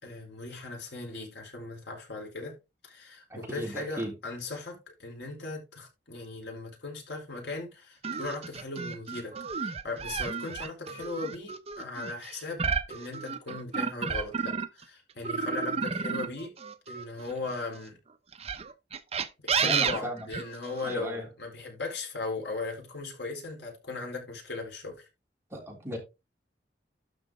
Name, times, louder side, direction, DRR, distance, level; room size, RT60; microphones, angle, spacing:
voice 1, 0.0-2.5 2.8-16.5 16.9-18.0 19.4-25.1, left 3 dB, 70° left, 4.2 m, -38 dB
voice 2, 3.3-4.1 19.6-20.3 20.9-21.3 25.5-26.0, equal, 15° right, 3.5 m, -35 dB
sound 1, 8.0-14.8 15.2-17.6 18.3-20.9, right 5 dB, 35° right, 0.8 m, -32 dB
12.5 x 5.2 x 3.7 m
head